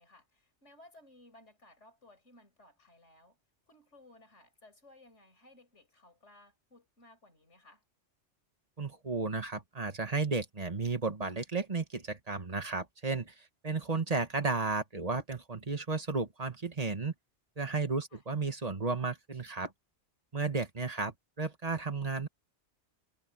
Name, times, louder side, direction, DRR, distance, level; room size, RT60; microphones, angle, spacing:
voice 1, 0.0-3.4 3.7-7.8 18.1-18.2, left 2 dB, 80° left, 6.0 m, -59 dB
voice 2, 8.8-17.1 17.6-19.7 20.3-22.3, right 4 dB, 35° right, 1.8 m, -33 dB
omnidirectional pair, 1.2 m